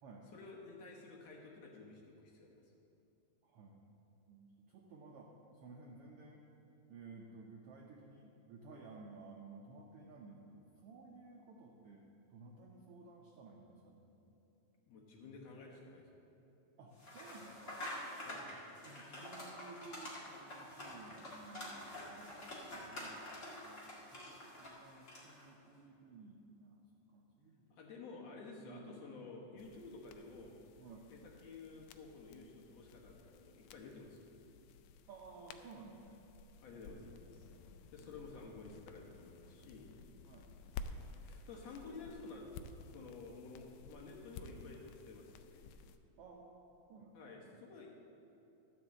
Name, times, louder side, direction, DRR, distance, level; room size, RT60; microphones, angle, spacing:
voice 1, 0.3-2.6 14.9-16.2 18.3-18.5 27.7-30.6 31.1-34.3 36.6-37.5 37.9-39.9 41.2-42.5 42.9-45.6 47.1-47.9, left 3 dB, 65° left, -2 dB, 2.2 m, -52 dB
voice 2, 3.4-3.9 4.3-6.4 6.9-14.0 16.8-17.9 18.8-23.3 23.6-26.8 27.1-27.6 28.1-28.2 28.6-29.0 30.8-31.1 35.1-36.3 37.9-38.3 40.2-40.5 46.2-47.6, right 3 dB, 75° right, -1 dB, 1.3 m, -56 dB
sound 1, 17.0-25.5, left 1 dB, 30° left, 1.7 m, -48 dB
sound 2, 29.6-46.0, left 5 dB, 85° left, 2.1 m, -54 dB
13.0 x 5.4 x 7.3 m, 2.9 s
omnidirectional pair, 3.5 m